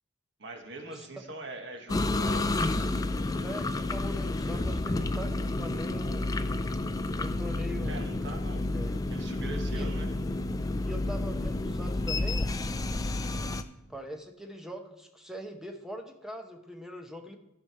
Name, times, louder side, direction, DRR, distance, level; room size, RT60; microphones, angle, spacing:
voice 1, 0.4-2.5 7.8-8.7 9.1-10.1, right 2 dB, 55° right, 4 dB, 1.3 m, -42 dB
sound 1, 1.9-13.6, left 2 dB, 15° left, 0.3 m, -30 dB
voice 2, 3.4-6.3 7.1-8.0 8.7-9.0 9.7-9.9 10.8-12.5 13.9-17.4, equal, ahead, 4 dB, 0.8 m, -42 dB
13.5 x 5.1 x 4.3 m, 0.97 s
head